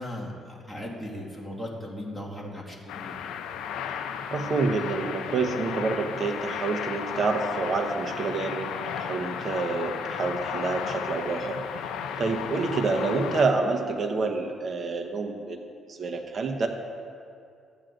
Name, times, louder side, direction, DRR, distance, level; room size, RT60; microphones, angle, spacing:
voice 1, 0.0-3.2, left 1 dB, 5° left, -4 dB, 1.7 m, -37 dB
sound 1, 2.9-13.4, left 8 dB, 85° left, 0.5 m, -34 dB
voice 2, 4.3-15.6 15.9-16.7, right 4 dB, 45° right, 4 dB, 1.0 m, -28 dB
14.0 x 9.0 x 2.5 m, 2.4 s
cardioid pair, 90°, 0 cm